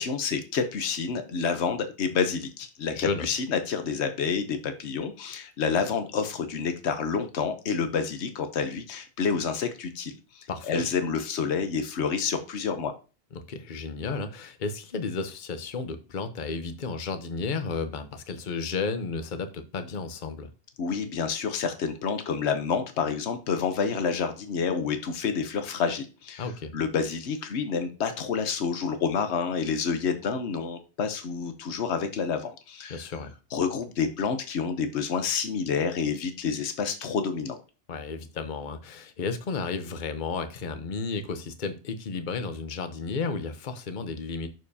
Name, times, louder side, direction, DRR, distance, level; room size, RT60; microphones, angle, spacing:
voice 1, 0.0-12.9 20.8-26.5 26.7-33.1 33.5-37.6, left 6 dB, 80° left, 1.1 m, -29 dB
voice 2, 2.9-3.3 10.5-10.8 13.3-20.5 26.4-26.7 32.9-33.3 37.9-44.5, left 4 dB, 50° left, 0.9 m, -33 dB
9.3 x 6.6 x 2.8 m
omnidirectional pair, 1.1 m